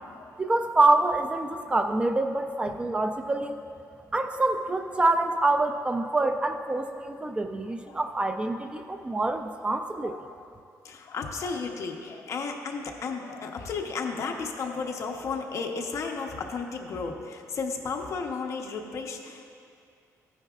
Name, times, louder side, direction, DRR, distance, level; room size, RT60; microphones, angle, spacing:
voice 1, 0.4-3.6 4.1-10.1, right 2 dB, 15° right, 6 dB, 0.3 m, -26 dB
voice 2, 4.0-4.3 6.8-6.9 7.9-8.2 9.2-9.3 9.6-10.4 10.8-19.5, left 4 dB, 55° left, 2 dB, 0.9 m, -34 dB
15.0 x 9.5 x 2.4 m, 2.4 s
cardioid pair, 155°, 6 cm